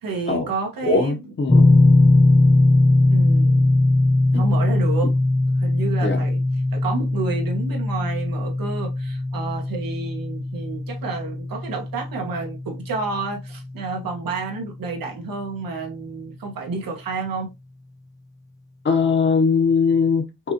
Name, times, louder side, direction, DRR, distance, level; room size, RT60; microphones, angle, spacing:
voice 1, 0.0-1.3 3.1-3.6 4.3-5.2 5.6-6.4 6.7-17.5, right 4 dB, 85° right, 1.7 m, -30 dB
voice 2, 0.9-1.6 4.3-4.5 6.0-6.2 18.8-20.5, left 5 dB, 35° left, 0.9 m, -20 dB
sound 1, 1.5-14.4, left 2 dB, 10° left, 0.3 m, -20 dB
5.6 x 3.0 x 2.9 m
wide cardioid pair, 175°, 33 cm